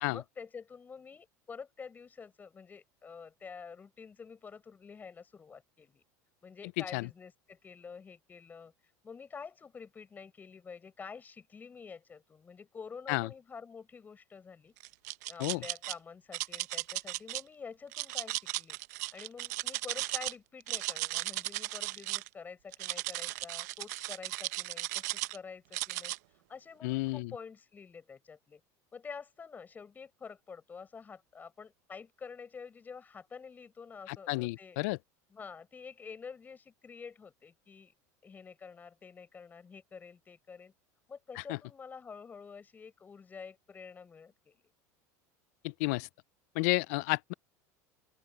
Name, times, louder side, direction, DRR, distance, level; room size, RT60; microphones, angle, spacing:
voice 1, 0.1-6.0 6.4-8.7 9.0-14.7 15.3-18.8 19.1-26.1 26.5-28.6 28.9-34.8 35.3-37.9 38.2-40.7 41.1-44.6, left 5 dB, 20° left, 6.6 m, -48 dB
voice 2, 6.8-7.1 13.1-13.3 15.4-15.6 26.8-27.3 34.1-35.0 41.4-41.6 45.6-46.1 46.5-47.3, left 24 dB, 75° left, 0.5 m, -31 dB
sound 1, 14.8-15.9 16.3-17.4 17.9-20.3 20.6-22.3 22.7-25.4 25.7-26.2, right 19 dB, 80° right, 0.8 m, -36 dB
open air
supercardioid pair, 140°, 9 cm